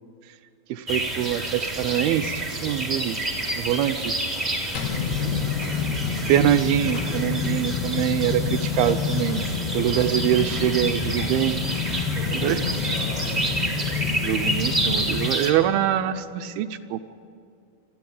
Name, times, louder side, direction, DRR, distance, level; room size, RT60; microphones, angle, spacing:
voice 1, 0.7-3.2 3.6-4.2 6.2-9.5 9.7-12.6 14.2-17.0, right 12 dB, 80° right, 9 dB, 2.6 m, -24 dB
sound 1, 0.9-15.5, right 1 dB, 10° right, 2.5 m, -29 dB
voice 2, 4.5-5.8 12.0-13.6, left 1 dB, 55° left, -2 dB, 8.5 m, -38 dB
sound 2, 4.8-15.3, left 6 dB, 85° left, 3.5 m, -28 dB
29.5 x 13.0 x 9.7 m, 2.4 s
omnidirectional pair, 4.5 m